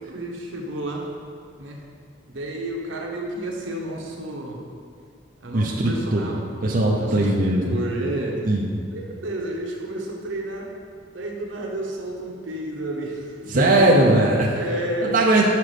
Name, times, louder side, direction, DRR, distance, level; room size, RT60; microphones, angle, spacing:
voice 1, 0.1-1.1 1.6-1.8 2.3-4.6 5.4-6.5 6.9-8.4 8.9-10.7 11.1-13.9 14.5-15.1, right 1 dB, 80° right, 0 dB, 1.0 m, -31 dB
voice 2, 5.5-6.3 6.6-7.8 8.5-8.7 13.5-14.5 15.0-15.4, right 2 dB, 45° right, -3 dB, 0.6 m, -19 dB
5.9 x 4.9 x 5.0 m, 2.2 s
head